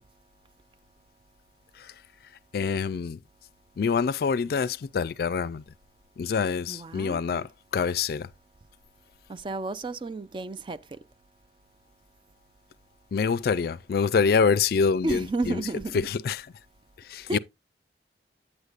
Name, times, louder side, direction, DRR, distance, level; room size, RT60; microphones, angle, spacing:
voice 1, 2.5-3.2 3.8-5.6 6.2-8.3 13.1-15.6 15.9-16.5 17.0-17.4, left 5 dB, 60° left, 0.3 m, -26 dB
voice 2, 6.7-7.5 9.3-11.0 15.0-15.9 17.3-17.4, right 2 dB, 30° right, 0.4 m, -32 dB
8.8 x 8.1 x 2.4 m
head